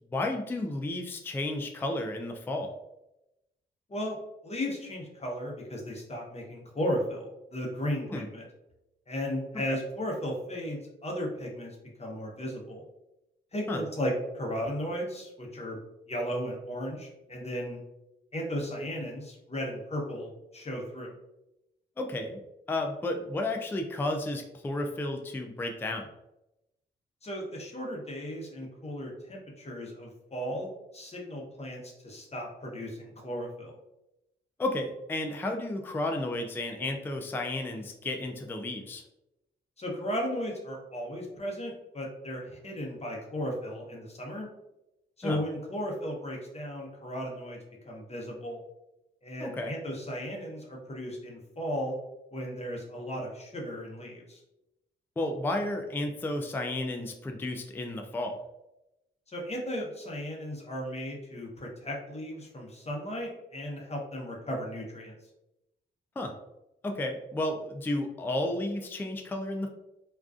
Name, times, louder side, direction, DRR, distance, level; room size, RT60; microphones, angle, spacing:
voice 1, 0.1-2.7 8.1-8.3 9.7-9.8 13.7-13.8 22.0-22.4 22.7-26.1 34.6-39.0 45.2-45.4 49.4-49.7 55.2-58.4 66.2-66.3 66.8-69.7, left 1 dB, 10° left, 4 dB, 0.3 m, -32 dB
voice 2, 4.4-8.5 9.1-12.8 13.5-15.8 16.1-17.8 18.3-21.1 27.2-33.8 39.8-44.5 45.2-47.6 47.9-48.6 49.2-51.9 52.3-54.4 59.3-65.1, equal, 30° left, -1 dB, 0.8 m, -35 dB
2.4 x 2.2 x 2.3 m, 0.90 s
supercardioid pair, 50°, 20 cm